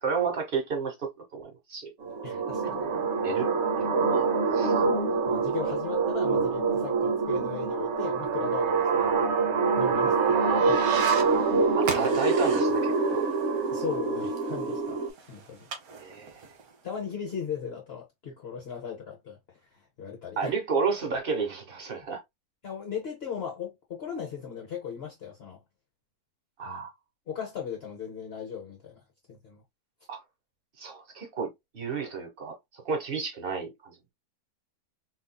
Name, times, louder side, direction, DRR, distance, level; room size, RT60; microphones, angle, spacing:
voice 1, 0.0-1.9 2.6-4.3 4.5-4.7 11.7-13.2 16.0-16.4 20.4-22.2 26.6-26.9 30.1-30.2 30.8-32.5 32.8-33.9, right 5 dB, 40° right, 1.3 m, -32 dB
sound 1, 2.0-15.1, right 4 dB, 60° right, 0.9 m, -25 dB
voice 2, 2.2-2.9 5.3-9.1 9.8-11.1 13.7-15.7 16.8-20.5 22.6-25.6 26.6-26.8 27.3-29.0 29.3-29.6, left 7 dB, 50° left, 0.9 m, -38 dB
sound 2, 11.8-17.0, right 5 dB, 80° right, 1.3 m, -41 dB
4.2 x 2.6 x 2.2 m
omnidirectional pair, 1.5 m